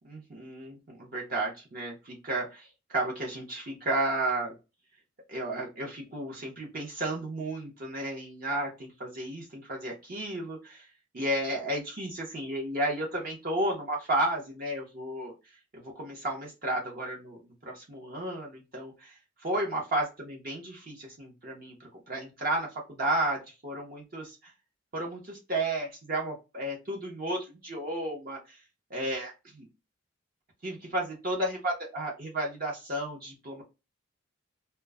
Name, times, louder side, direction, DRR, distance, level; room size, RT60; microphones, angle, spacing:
voice 1, 0.1-4.6 5.3-10.9 11.1-15.3 15.7-24.5 24.9-28.6 28.9-29.7 30.6-33.6, right 1 dB, 45° right, -2 dB, 0.7 m, -33 dB
2.2 x 2.0 x 3.4 m, 0.27 s
head